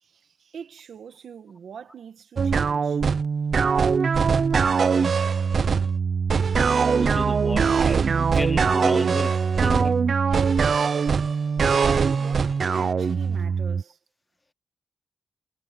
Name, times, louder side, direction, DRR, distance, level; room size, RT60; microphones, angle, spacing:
voice 1, 0.0-3.0 3.6-3.9 4.6-4.7 10.3-10.4 12.0-14.0, right 7 dB, 90° right, 1.8 m, -43 dB
sound 1, 2.4-13.8, right 5 dB, 60° right, 0.7 m, -22 dB
voice 2, 6.9-10.0, left 2 dB, 20° left, 1.0 m, -33 dB
cardioid pair, 90°, 0 cm